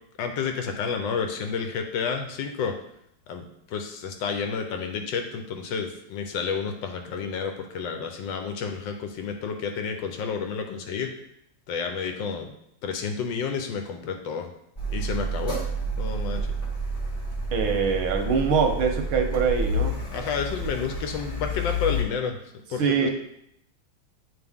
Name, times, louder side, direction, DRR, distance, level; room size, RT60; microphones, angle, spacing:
voice 1, 0.2-2.8 3.3-11.1 11.7-12.5 12.8-14.5 14.9-15.6 16.0-16.5 20.1-22.4 22.7-23.1, left 6 dB, 70° left, 5 dB, 1.3 m, -30 dB
Car, 14.8-22.0, equal, 20° left, 1.2 m, -29 dB
voice 2, 17.5-20.0 22.8-23.1, right 6 dB, 90° right, 4 dB, 1.7 m, -23 dB
8.8 x 3.6 x 3.6 m, 0.76 s
omnidirectional pair, 2.2 m